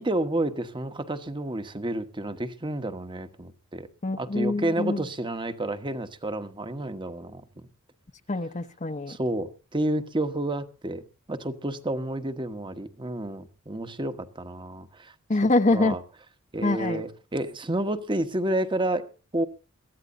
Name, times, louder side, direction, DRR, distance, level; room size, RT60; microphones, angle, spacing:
voice 1, 0.0-3.9 4.2-7.4 9.1-11.0 11.3-15.1 15.7-16.0 16.5-19.1 19.3-19.4, right 1 dB, 20° right, 1.1 m, -30 dB
voice 2, 4.0-5.1 8.3-9.2 15.3-16.0 16.6-17.0, left 2 dB, 35° left, 0.9 m, -25 dB
22.5 x 14.5 x 2.7 m
head